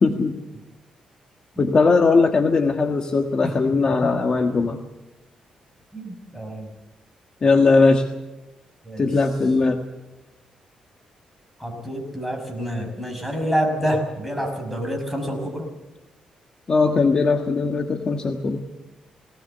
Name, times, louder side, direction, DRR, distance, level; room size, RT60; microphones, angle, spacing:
voice 1, 0.0-0.4 1.6-4.8 7.4-8.1 9.0-9.8 16.7-18.7, left 4 dB, 35° left, 4 dB, 1.5 m, -19 dB
voice 2, 3.4-3.7 4.0-4.1 5.9-6.7 7.6-7.7 8.8-9.2 11.6-15.7, equal, ahead, 1 dB, 5.7 m, -27 dB
19.0 x 18.0 x 8.0 m, 1.0 s
cardioid pair, 120°, 2 cm